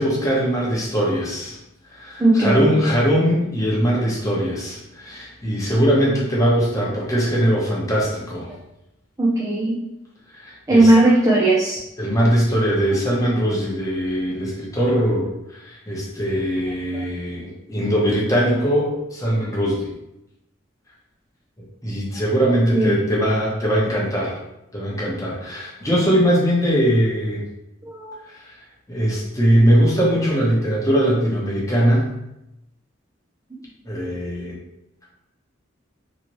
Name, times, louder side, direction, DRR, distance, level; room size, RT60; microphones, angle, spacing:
voice 1, 0.0-1.6 1.9-8.5 10.3-10.9 12.0-19.9 21.8-24.4 24.7-27.4 28.3-28.4 28.9-32.1 33.8-34.5, equal, 15° left, -5 dB, 0.9 m, -21 dB
voice 2, 2.2-2.7 9.2-9.8 10.7-11.8 16.9-17.0 22.7-23.1 27.8-28.2, right 2 dB, 15° right, -6 dB, 0.4 m, -17 dB
3.2 x 3.0 x 2.9 m, 0.88 s
head